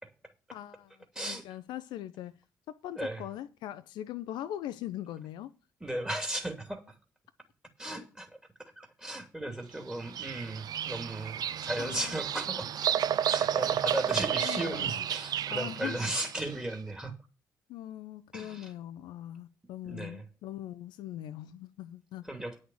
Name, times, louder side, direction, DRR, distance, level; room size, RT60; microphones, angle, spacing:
voice 1, 0.5-2.4 2.7-5.5 11.8-12.2 14.4-15.0 15.5-16.0 17.7-22.3, left 12 dB, 60° left, 0.7 m, -41 dB
voice 2, 1.1-1.4 3.0-3.2 5.8-6.9 7.8-8.3 8.6-12.7 13.2-17.1 18.3-18.7 19.8-20.2 22.2-22.6, right 1 dB, 10° right, 2.6 m, -36 dB
Bird vocalization bird call bird song, 9.9-16.5, right 10 dB, 45° right, 0.5 m, -32 dB
10.0 x 6.5 x 7.0 m
figure-of-eight pair, 40°, 9 cm